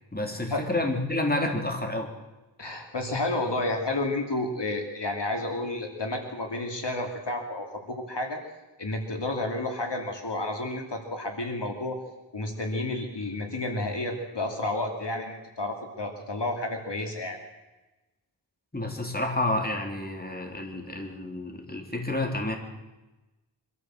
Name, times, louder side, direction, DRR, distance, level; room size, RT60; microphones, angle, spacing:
voice 1, 0.1-2.1 18.7-22.6, left 1 dB, 20° left, 3 dB, 3.5 m, -29 dB
voice 2, 2.6-8.4 8.8-12.0 12.3-17.4, left 2 dB, 65° left, 3 dB, 2.9 m, -31 dB
24.5 x 14.0 x 7.7 m, 1.1 s
wide cardioid pair, 60°, 44 cm